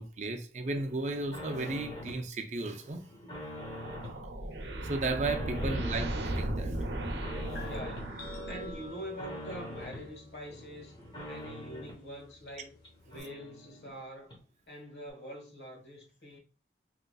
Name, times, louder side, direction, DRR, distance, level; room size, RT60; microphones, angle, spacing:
voice 1, 0.0-3.0 4.8-6.8 7.6-7.7, right 2 dB, 40° right, 0.5 m, -34 dB
sound 1, 0.6-2.3 2.6-4.2 4.6-6.2 6.5-8.1 8.5-10.1 10.5-12.0 12.5-12.6 12.8-12.9 13.1-14.0 14.3-14.4, left 1 dB, 25° left, 1.1 m, -45 dB
sound 2, 3.5-9.0, right 1 dB, 80° right, 0.7 m, -36 dB
voice 2, 5.6-6.1 7.6-11.0 11.3-12.7 13.0-14.4 14.7-16.4, equal, 75° left, 1.3 m, -45 dB
sound 3, 7.5-13.2, left 1 dB, 55° left, 0.7 m, -49 dB
3.9 x 3.1 x 2.3 m
head